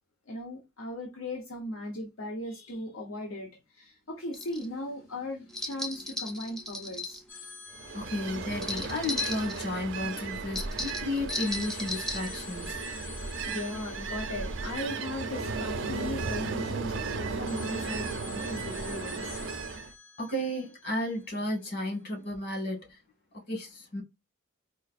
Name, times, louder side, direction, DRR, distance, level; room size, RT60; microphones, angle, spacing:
voice 1, 0.3-7.2 13.4-19.4, left 1 dB, 80° left, 0.8 m, -38 dB
sound 1, 4.3-4.6 5.5-7.2 8.5-9.6 10.5-12.4, left 2 dB, 5° left, 0.4 m, -35 dB
sound 2, 7.3-10.2 11.5-16.4 17.5-21.6, left 5 dB, 65° left, 1.7 m, -48 dB
Ocean, 7.7-19.9, right 4 dB, 65° right, 0.5 m, -35 dB
voice 2, 7.9-12.8 20.2-23.0 23.5-24.0, left 1 dB, 50° left, 2.0 m, -33 dB
4.5 x 2.5 x 2.5 m
head